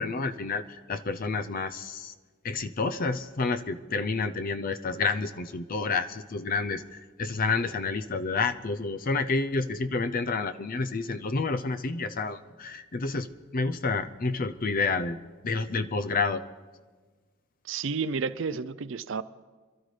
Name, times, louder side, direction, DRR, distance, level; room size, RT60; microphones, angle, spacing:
voice 1, 0.0-2.1 2.4-13.3 13.5-15.2 15.4-16.4, left 4 dB, 45° left, 11 dB, 0.6 m, -29 dB
voice 2, 17.6-19.2, right 5 dB, 65° right, 14 dB, 0.5 m, -31 dB
27.0 x 12.5 x 3.3 m, 1.4 s
head